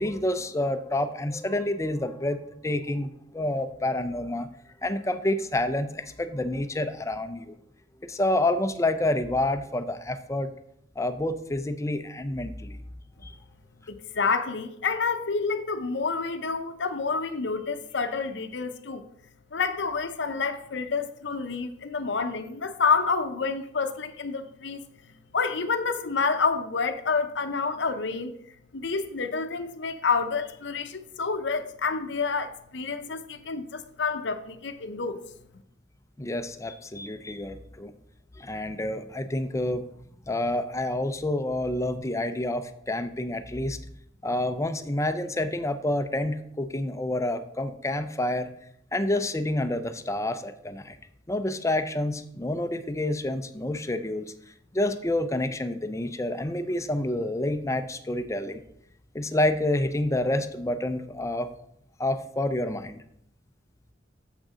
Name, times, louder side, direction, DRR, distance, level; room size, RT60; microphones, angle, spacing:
voice 1, 0.0-2.4 2.6-4.5 4.8-7.5 8.0-10.5 11.0-12.8 13.2-13.3 36.2-37.9 38.4-39.9 40.3-43.8 44.2-48.5 48.9-51.0 51.3-54.3 54.7-58.6 59.1-61.5 62.0-63.0, left 1 dB, 15° left, 0.5 m, -28 dB
voice 2, 13.9-19.0 19.5-24.8 25.3-28.3 28.7-35.2, left 4 dB, 65° left, 0.7 m, -28 dB
7.4 x 6.4 x 4.9 m
head